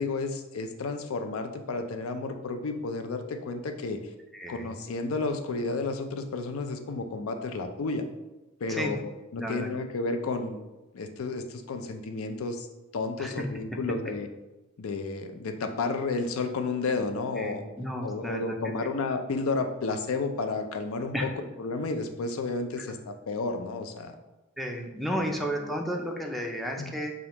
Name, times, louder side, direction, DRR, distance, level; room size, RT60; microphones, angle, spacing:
voice 1, 0.0-4.0 4.5-8.0 8.6-10.6 10.9-12.7 12.9-14.3 14.8-17.6 18.0-24.2 25.0-25.7 26.8-26.9, left 3 dB, 85° left, 7 dB, 0.4 m, -32 dB
voice 2, 4.3-4.7 8.7-8.9 9.4-9.7 13.2-13.3 17.4-18.6 21.1-21.3 22.8-22.9 24.6-27.1, equal, ahead, 1 dB, 0.3 m, -32 dB
5.0 x 2.4 x 2.9 m, 1.1 s
head